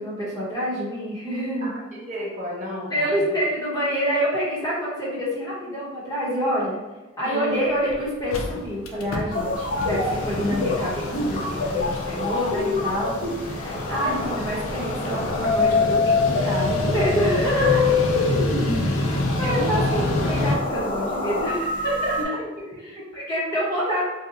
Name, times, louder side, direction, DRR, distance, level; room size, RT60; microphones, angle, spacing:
voice 1, 0.0-1.7 2.9-6.8 7.2-13.2 13.4-17.9 18.6-22.2 22.8-24.0, equal, 20° left, -7 dB, 0.9 m, -27 dB
voice 2, 1.6-3.2 7.2-7.6 19.4-19.8 22.2-22.3 22.6-23.0, equal, 35° right, -4 dB, 0.7 m, -33 dB
Mechanical fan, 7.5-7.6 7.9-8.0 8.2-20.6, left 2 dB, 85° left, 0.5 m, -28 dB
sound 1, 9.3-22.2, left 3 dB, 45° left, 0.7 m, -26 dB
2.7 x 2.1 x 3.7 m, 1.1 s
head